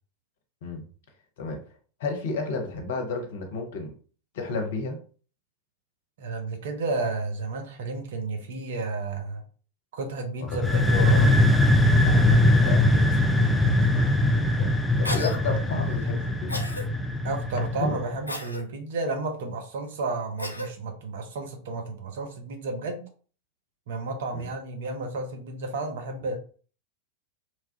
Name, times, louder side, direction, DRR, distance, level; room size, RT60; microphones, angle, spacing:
voice 1, 2.0-3.9 4.3-5.0 10.9-11.3 12.2-12.9 13.9-16.5 17.8-18.0 24.3-24.5, left 3 dB, 55° left, 3 dB, 0.7 m, -32 dB
voice 2, 6.2-9.4 9.9-11.4 12.0-13.1 13.5-13.8 17.2-23.0 23.9-26.4, right 3 dB, 55° right, 5 dB, 0.6 m, -32 dB
sound 1, 10.5-18.1, left 1 dB, 5° left, 0.3 m, -21 dB
Cough, 15.0-15.4 16.5-16.9 18.3-18.6 20.4-20.7, left 1 dB, 85° left, 0.3 m, -32 dB
2.9 x 2.2 x 2.7 m, 0.41 s
figure-of-eight pair, 90°, 0 cm